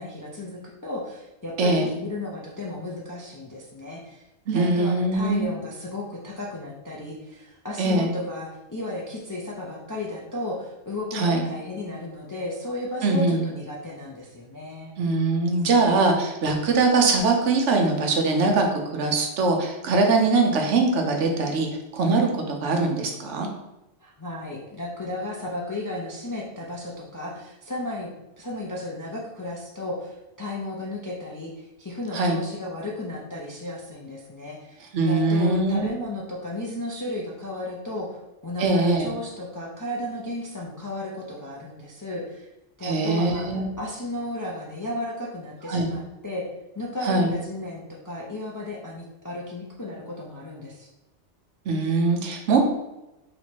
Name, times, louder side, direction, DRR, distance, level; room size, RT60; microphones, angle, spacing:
voice 1, 0.0-4.3 4.5-14.9 24.0-38.2 38.4-42.5 42.8-43.5 43.8-46.5 46.8-50.9, left 2 dB, 30° left, -3 dB, 0.3 m, -34 dB
voice 2, 1.6-1.9 4.5-5.5 7.8-8.1 11.1-11.5 13.0-13.4 15.0-23.5 32.1-32.4 34.9-35.9 38.6-39.1 42.8-43.6 45.7-45.9 47.0-47.3 51.7-52.6, right 3 dB, 85° right, 3 dB, 1.1 m, -22 dB
3.2 x 2.9 x 4.3 m, 0.97 s
omnidirectional pair, 1.2 m